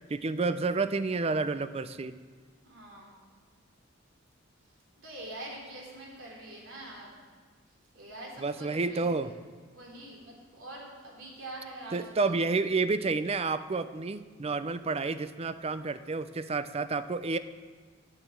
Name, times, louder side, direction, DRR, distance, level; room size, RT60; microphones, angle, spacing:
voice 1, 0.1-2.1 8.4-9.3 11.9-17.4, right 3 dB, 30° right, 13 dB, 0.4 m, -30 dB
voice 2, 2.6-3.3 5.0-7.2 7.9-9.3 9.7-12.4, right 1 dB, 75° right, -2 dB, 3.5 m, -45 dB
9.8 x 9.5 x 7.4 m, 1.5 s
head